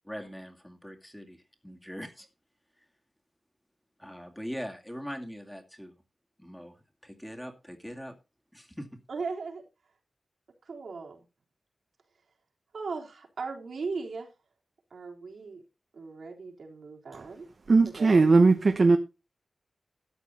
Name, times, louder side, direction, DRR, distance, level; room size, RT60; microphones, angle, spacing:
voice 1, 0.0-2.3 2.8-2.9 4.0-5.9 6.4-6.8 7.0-8.1 8.5-8.9, equal, 5° left, 2.2 m, -41 dB
voice 2, 9.1-9.6 10.6-11.2 12.7-14.3 14.9-15.6 15.9-17.5 17.9-18.3, right 4 dB, 85° right, 3.6 m, -38 dB
voice 3, 17.7-19.0, right 3 dB, 55° right, 1.0 m, -19 dB
13.0 x 9.1 x 4.3 m
wide cardioid pair, 100°, 0 cm